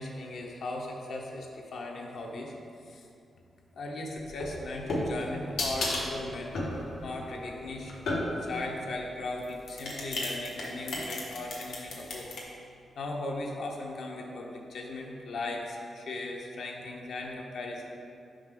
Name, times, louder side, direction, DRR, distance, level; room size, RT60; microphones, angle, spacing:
voice 1, 0.0-2.5 2.8-3.1 3.7-6.5 7.0-8.0 8.3-12.3 13.0-18.0, left 2 dB, 70° left, -1 dB, 0.8 m, -38 dB
sound 1, 4.3-8.6 9.4-12.4, left 2 dB, 90° left, 1.1 m, -33 dB
5.8 x 5.0 x 3.7 m, 2.6 s
wide cardioid pair, 130°, 0 cm